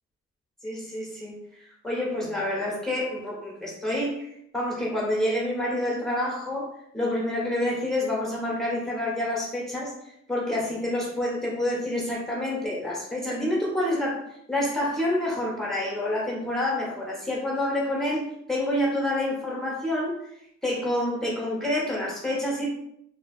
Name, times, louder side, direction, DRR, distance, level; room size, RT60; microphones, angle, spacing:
voice 1, 0.6-9.9 10.3-14.2 14.5-20.1 20.6-22.7, left 1 dB, ahead, -4 dB, 1.2 m, -28 dB
2.8 x 2.6 x 2.4 m, 0.73 s
cardioid pair, 90°, 30 cm